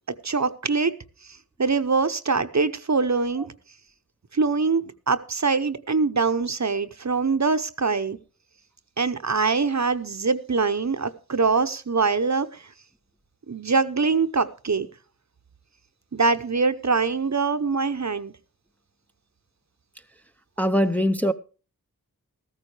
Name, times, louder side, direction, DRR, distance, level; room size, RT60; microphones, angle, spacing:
voice 1, 0.2-0.9 1.6-3.5 4.3-8.2 9.0-12.6 13.5-14.9 16.1-18.3, right 4 dB, 50° right, 0.8 m, -23 dB
voice 2, 20.6-21.3, equal, 5° left, 0.6 m, -21 dB
14.0 x 14.0 x 3.3 m
wide cardioid pair, 45°, 35 cm